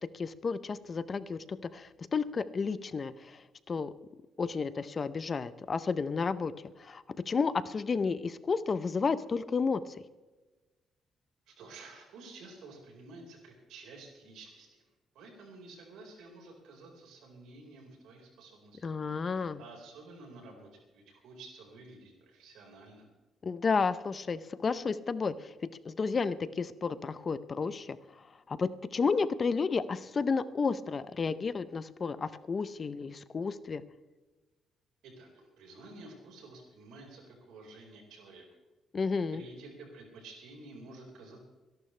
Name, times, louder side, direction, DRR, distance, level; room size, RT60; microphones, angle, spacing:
voice 1, 0.0-3.4 3.7-3.9 4.4-6.5 6.8-10.0 18.8-19.6 23.4-25.5 25.8-28.0 28.5-33.8 38.9-39.4, left 5 dB, 40° left, 15 dB, 0.7 m, -32 dB
voice 2, 11.5-14.8 15.1-18.9 19.3-23.1 35.0-38.4 39.3-41.4, right 3 dB, 85° right, 0 dB, 4.7 m, -51 dB
26.0 x 11.5 x 3.3 m, 1.2 s
cardioid pair, 90°, 0 cm